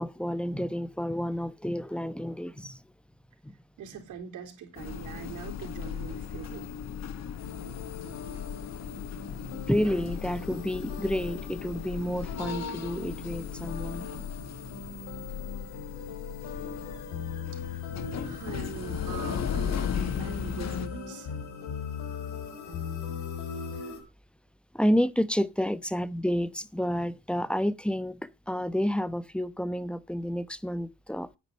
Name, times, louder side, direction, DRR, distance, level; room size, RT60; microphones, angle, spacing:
voice 1, 0.0-2.8 3.4-3.6 9.5-14.1 24.7-28.2 28.5-31.4, equal, 5° left, 0.9 m, -30 dB
voice 2, 3.8-6.7 17.5-17.8 18.2-21.3, right 7 dB, 85° right, 3.9 m, -42 dB
sound 1, 4.8-20.9, left 8 dB, 60° left, 1.6 m, -37 dB
sound 2, 7.4-24.0, left 5 dB, 85° left, 4.6 m, -39 dB
9.9 x 8.9 x 5.5 m
cardioid pair, 90°, 30 cm